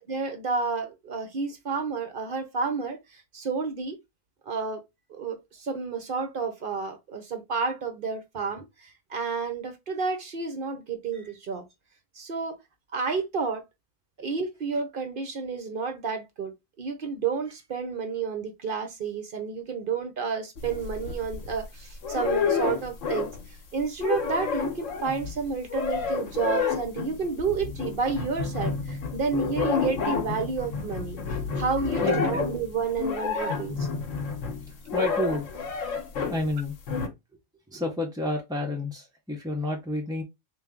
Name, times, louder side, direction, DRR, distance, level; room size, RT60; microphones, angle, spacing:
voice 1, 0.1-4.0 4.5-4.8 5.1-11.6 12.1-12.6 12.9-13.6 14.2-16.5 16.8-23.3 23.7-31.2 31.5-33.8, right 5 dB, 55° right, 0.7 m, -30 dB
sound 1, 20.6-21.6 22.0-23.5 23.8-36.4 36.9-37.1, left 5 dB, 75° left, 1.2 m, -30 dB
voice 2, 32.0-32.4 34.9-35.5 36.2-36.7 37.7-40.2, left 2 dB, 5° right, 0.4 m, -30 dB
3.3 x 2.5 x 3.5 m
omnidirectional pair, 1.3 m